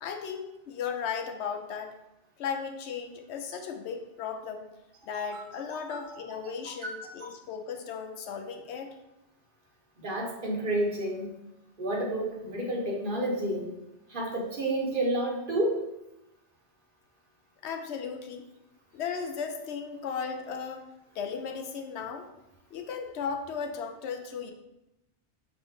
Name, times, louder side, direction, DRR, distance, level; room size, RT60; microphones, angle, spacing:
voice 1, 0.0-1.9 2.4-4.7 5.0-9.0 17.6-18.4 18.9-20.9 21.1-22.3 22.7-24.5, left 6 dB, 75° left, 5 dB, 0.8 m, -36 dB
voice 2, 5.3-6.2 6.6-7.3 10.0-11.3 11.8-13.7 14.1-15.8, right 1 dB, 50° right, -1 dB, 1.0 m, -31 dB
5.8 x 2.6 x 3.5 m, 0.91 s
omnidirectional pair, 1.2 m